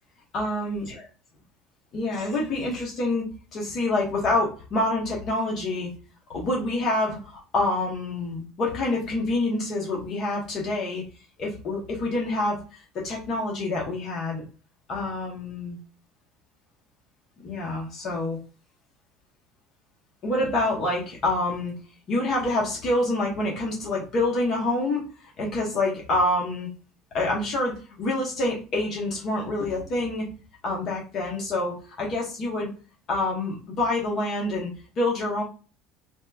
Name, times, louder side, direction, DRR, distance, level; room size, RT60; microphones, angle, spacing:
voice 1, 0.3-1.1 1.9-3.3 3.5-5.9 6.3-11.0 11.4-14.4 14.9-15.8 17.4-18.4 20.2-21.7 22.1-25.0 25.4-26.7 27.1-30.3 30.6-32.7 33.1-34.7 35.0-35.4, left 2 dB, 35° left, -2 dB, 0.7 m, -27 dB
2.8 x 2.2 x 3.3 m, 0.36 s
cardioid pair, 165°, 0 cm